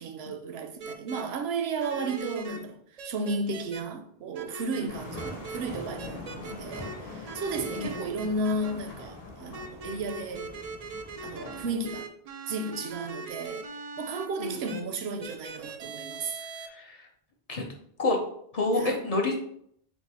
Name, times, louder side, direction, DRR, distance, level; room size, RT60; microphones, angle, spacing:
voice 1, 0.0-10.5 11.2-12.1 12.5-13.6 14.0-16.4 18.8-19.0, right 3 dB, 80° right, 0.8 m, -33 dB
sound 1, 0.8-1.2 1.8-2.6 3.0-3.8 4.3-4.8 5.2-5.6 6.0-6.9 7.2-8.7 9.5-14.3 14.7-14.8 15.2-16.7, right 4 dB, 50° right, 0.5 m, -40 dB
sound 2, 4.9-12.0, left 2 dB, 65° left, 1.5 m, -42 dB
voice 2, 14.4-14.8 16.7-17.1 17.5-17.7 18.0-18.2 18.5-19.4, left 2 dB, 45° left, 0.6 m, -28 dB
4.6 x 2.1 x 4.1 m
omnidirectional pair, 1.0 m